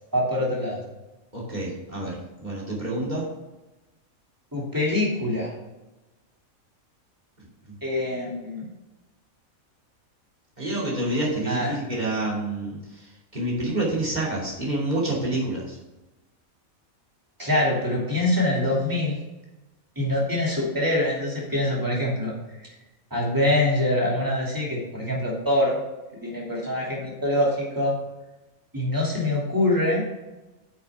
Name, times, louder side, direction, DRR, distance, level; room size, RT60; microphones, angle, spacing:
voice 1, 0.1-0.8 4.5-5.5 7.8-8.7 11.5-11.8 17.4-19.2 20.0-22.3 23.1-25.8 26.2-28.0 28.7-30.0, left 1 dB, 15° right, -4 dB, 2.7 m, -24 dB
voice 2, 1.3-3.3 7.4-7.7 10.6-15.8, right 1 dB, 30° right, -3 dB, 2.8 m, -28 dB
9.4 x 7.2 x 3.6 m, 1.0 s
omnidirectional pair, 1.5 m